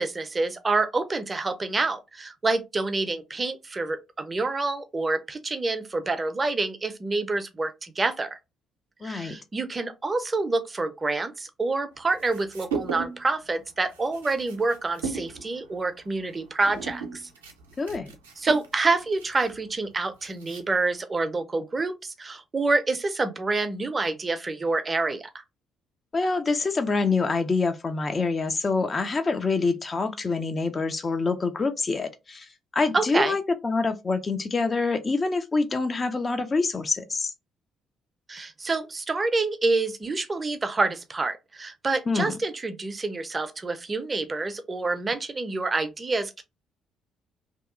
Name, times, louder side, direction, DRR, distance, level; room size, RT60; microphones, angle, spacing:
voice 1, 0.0-8.4 9.0-17.2 18.4-25.4 32.9-33.4 38.3-46.4, right 3 dB, 30° right, 0.5 m, -27 dB
voice 2, 9.0-9.4 17.8-18.1 26.1-37.3 42.1-42.4, left 4 dB, 35° left, 0.4 m, -26 dB
sound 1, 12.1-13.3 13.6-21.0, right 5 dB, 80° right, 0.5 m, -37 dB
2.7 x 2.3 x 2.5 m
figure-of-eight pair, 45°, 0 cm